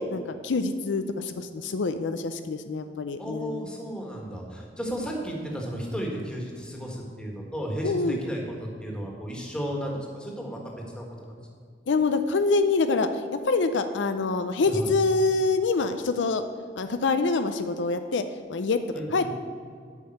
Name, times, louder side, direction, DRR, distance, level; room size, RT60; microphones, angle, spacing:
voice 1, 0.0-3.6 7.8-8.2 11.9-16.4 16.8-18.2 18.5-18.8 19.1-19.3, left 3 dB, 75° left, 9 dB, 0.5 m, -25 dB
voice 2, 3.2-11.3 14.7-14.9 18.9-19.3, equal, 5° left, -1 dB, 1.6 m, -34 dB
8.3 x 5.4 x 7.8 m, 2.1 s
head